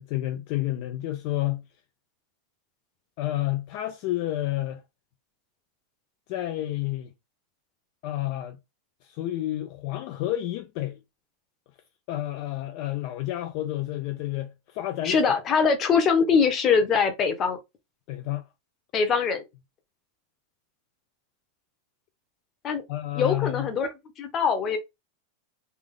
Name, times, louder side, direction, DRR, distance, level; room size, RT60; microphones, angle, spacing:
voice 1, 0.0-1.6 3.2-4.8 6.3-7.1 8.0-8.6 9.0-11.0 12.1-15.2 18.1-18.4 22.9-23.7, left 15 dB, 45° left, 0.4 m, -30 dB
voice 2, 15.0-17.6 18.9-19.4 22.6-22.8 23.1-23.9 24.2-24.8, left 5 dB, 25° left, 0.8 m, -22 dB
3.3 x 2.3 x 3.7 m
supercardioid pair, 165°, 0 cm